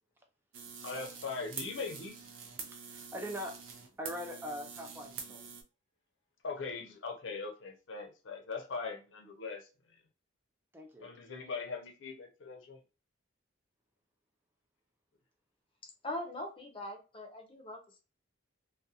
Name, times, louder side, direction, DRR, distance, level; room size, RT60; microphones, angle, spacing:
sound 1, 0.5-5.6, right 6 dB, 90° right, 0.5 m, -46 dB
voice 1, 0.8-2.3 6.4-10.0 11.0-12.8, left 4 dB, 80° left, 0.6 m, -41 dB
voice 2, 2.9-3.6 4.0-5.5 10.7-11.3, equal, 10° right, 0.3 m, -42 dB
voice 3, 16.0-18.0, left 1 dB, 25° left, 0.6 m, -41 dB
2.4 x 2.2 x 2.7 m
head